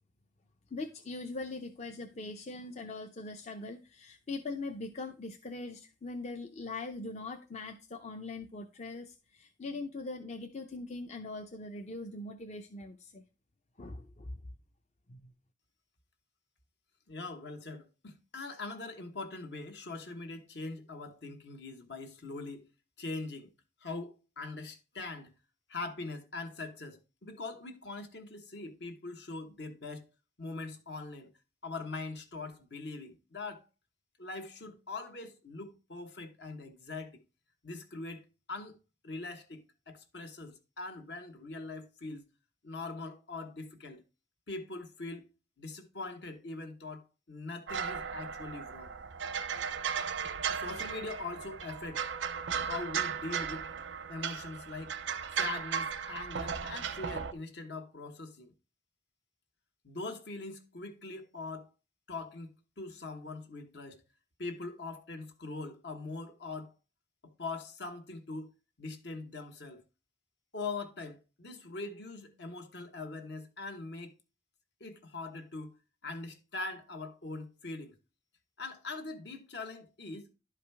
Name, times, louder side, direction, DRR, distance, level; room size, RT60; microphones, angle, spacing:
voice 1, 0.7-13.2 13.8-14.3 15.1-15.3, left 3 dB, 40° left, 0.6 m, -41 dB
voice 2, 17.1-22.7 23.0-23.5 23.8-25.3 25.7-30.0 30.4-31.3 31.6-33.6 34.2-37.2 37.6-38.8 39.0-42.2 42.6-44.0 44.5-45.3 45.6-48.9 50.5-52.1 52.6-53.7 54.1-55.0 55.4-58.5 59.8-61.7 62.1-64.0 64.4-66.7 67.2-68.5 68.8-69.8 70.5-74.1 74.8-78.0 78.6-80.3, left 3 dB, 65° left, 1.2 m, -42 dB
sound 1, 47.7-57.3, right 7 dB, 90° right, 0.6 m, -36 dB
11.0 x 4.9 x 3.4 m
head